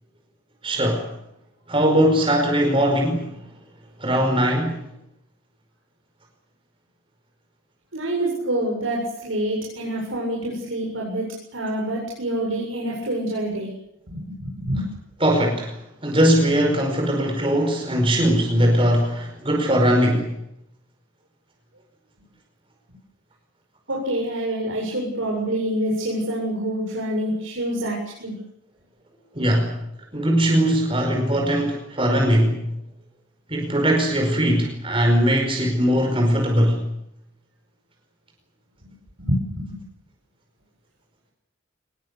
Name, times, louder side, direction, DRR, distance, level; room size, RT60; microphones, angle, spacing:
voice 1, 0.6-1.1 1.7-3.3 4.0-4.9 15.2-15.8 16.0-20.4 29.3-29.7 30.1-32.6 33.5-36.8, equal, 25° right, 2 dB, 4.9 m, -20 dB
voice 2, 7.9-11.3 11.5-13.7 14.1-14.9 23.9-28.3 39.2-39.8, right 1 dB, 85° right, -2 dB, 7.8 m, -26 dB
24.5 x 20.5 x 8.3 m, 0.78 s
head